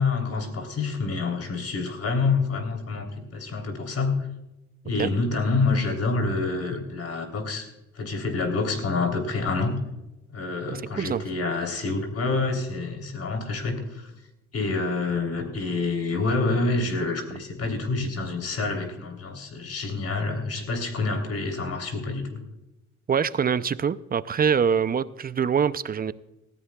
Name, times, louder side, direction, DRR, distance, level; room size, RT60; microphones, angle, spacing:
voice 1, 0.0-4.3 4.8-7.7 7.9-9.8 10.3-14.1 14.5-22.4, left 3 dB, 55° left, 3.3 m, -27 dB
voice 2, 10.7-11.2 23.1-26.1, right 7 dB, 30° right, 0.5 m, -24 dB
19.0 x 15.0 x 2.3 m
cardioid pair, 90°, 30 cm